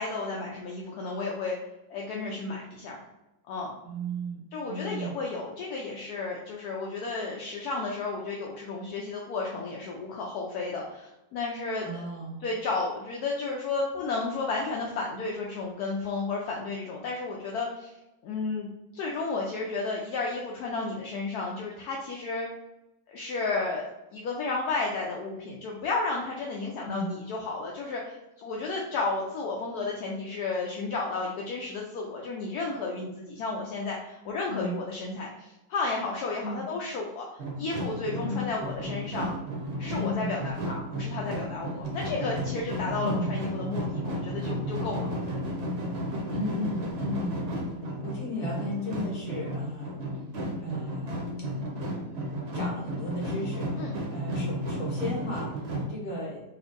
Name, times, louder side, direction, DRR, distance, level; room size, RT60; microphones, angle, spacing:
voice 1, 0.0-1.6 1.9-3.0 3.5-3.7 4.5-11.9 12.4-17.9 18.2-18.7 18.9-22.5 23.1-37.3 37.6-39.3 39.8-45.3 53.8-53.9, left 3 dB, 70° left, -2 dB, 1.0 m, -32 dB
voice 2, 3.8-4.4 4.7-5.1 11.8-12.4 26.8-27.1 34.5-34.8 36.4-36.6 38.2-38.4 40.0-40.3 43.0-43.3 46.3-47.4 48.0-50.0 50.6-51.1 52.5-56.4, equal, 55° left, -4 dB, 1.4 m, -35 dB
sound 1, 37.4-55.9, equal, 55° right, 0.7 m, -33 dB
4.2 x 2.6 x 2.5 m, 0.97 s
omnidirectional pair, 1.9 m